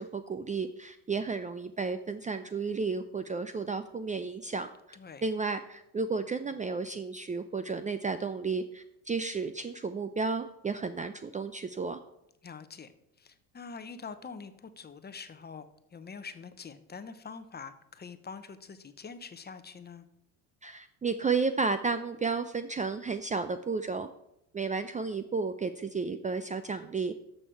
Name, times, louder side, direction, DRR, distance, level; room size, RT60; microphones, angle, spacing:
voice 1, 0.0-12.0 20.6-24.1 24.5-27.1, right 4 dB, 20° right, 11 dB, 0.5 m, -32 dB
voice 2, 4.9-5.2 12.4-12.9 13.2-20.0, left 5 dB, 25° left, 11 dB, 0.9 m, -45 dB
12.0 x 6.6 x 4.6 m, 0.81 s
supercardioid pair, 85°, 39 cm